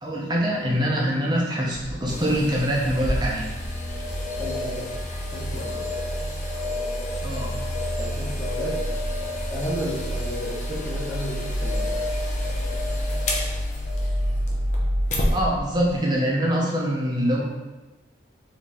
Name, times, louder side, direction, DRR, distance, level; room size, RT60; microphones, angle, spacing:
voice 1, 0.0-3.5 7.2-7.6 15.3-17.4, equal, 20° right, -3 dB, 0.7 m, -24 dB
sound 1, 1.7-16.0, equal, 75° left, 0.7 m, -30 dB
sound 2, 2.1-15.4 15.9-16.0, left 1 dB, 40° left, 0.6 m, -32 dB
voice 2, 4.4-4.9 5.3-5.8 7.9-8.8 9.5-12.0, equal, 10° left, -8 dB, 1.1 m, -32 dB
4.1 x 3.1 x 3.6 m, 1.2 s
head